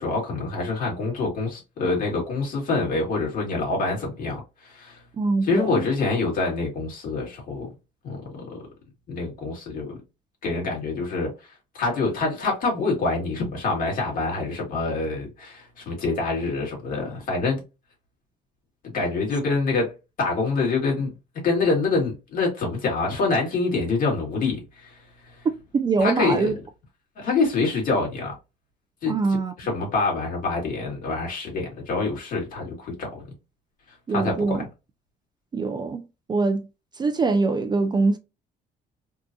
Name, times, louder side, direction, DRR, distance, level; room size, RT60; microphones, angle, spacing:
voice 1, 0.0-5.0 5.4-7.7 8.0-8.7 9.1-10.0 10.4-11.3 11.7-17.6 18.9-21.1 21.4-25.0 26.0-26.5 27.2-28.3 29.0-29.2 29.6-33.2 34.1-34.6, left 3 dB, 55° left, 2.0 m, -26 dB
voice 2, 5.2-5.9 25.7-26.5 29.1-29.5 34.1-34.6 35.5-36.0 36.3-36.6 37.0-38.2, right 3 dB, 25° right, 0.4 m, -23 dB
3.6 x 2.4 x 2.6 m
cardioid pair, 110°, 17 cm